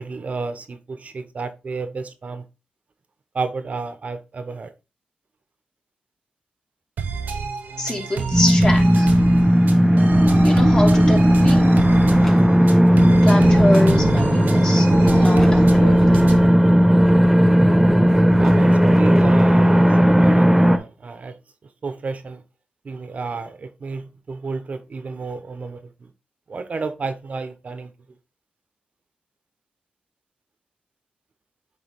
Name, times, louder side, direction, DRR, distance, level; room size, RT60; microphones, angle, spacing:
voice 1, 0.0-2.4 3.3-4.7 18.4-21.3 21.8-22.4 22.8-25.8 26.5-27.9, right 4 dB, 55° right, 1.0 m, -31 dB
sound 1, 7.0-16.6, right 5 dB, 90° right, 1.2 m, -29 dB
voice 2, 7.8-9.1 10.4-11.7 13.2-16.2, left 1 dB, 30° left, 2.7 m, -26 dB
sound 2, 8.3-20.8, equal, 10° right, 0.8 m, -15 dB
sound 3, 10.4-10.5 10.9-11.6 12.1-12.6 13.2-14.0 14.6-14.8 15.3-16.4 17.1-17.8 18.1-19.6, equal, 10° left, 2.9 m, -38 dB
9.0 x 3.6 x 3.6 m
cardioid pair, 65°, 3 cm